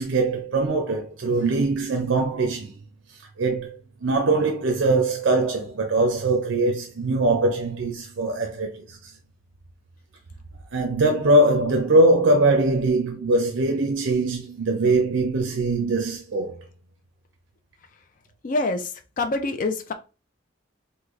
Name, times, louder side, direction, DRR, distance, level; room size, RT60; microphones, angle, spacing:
voice 1, 0.0-2.8 3.4-9.1 10.7-16.6, right 2 dB, 80° right, 0.5 m, -22 dB
voice 2, 18.4-19.9, left 2 dB, 40° left, 0.4 m, -26 dB
3.2 x 2.3 x 3.5 m
head